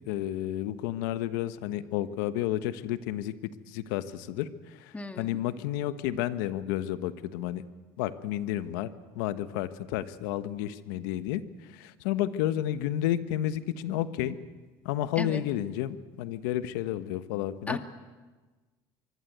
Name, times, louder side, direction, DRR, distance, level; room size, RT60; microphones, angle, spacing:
voice 1, 0.1-3.3 3.7-7.6 8.0-14.3 14.8-17.8, left 12 dB, 85° left, 12 dB, 1.3 m, -31 dB
voice 2, 4.9-5.4 15.2-15.4 17.7-17.8, left 2 dB, 15° left, 6 dB, 2.4 m, -35 dB
24.5 x 24.0 x 8.2 m, 1.3 s
supercardioid pair, 100°, 11 cm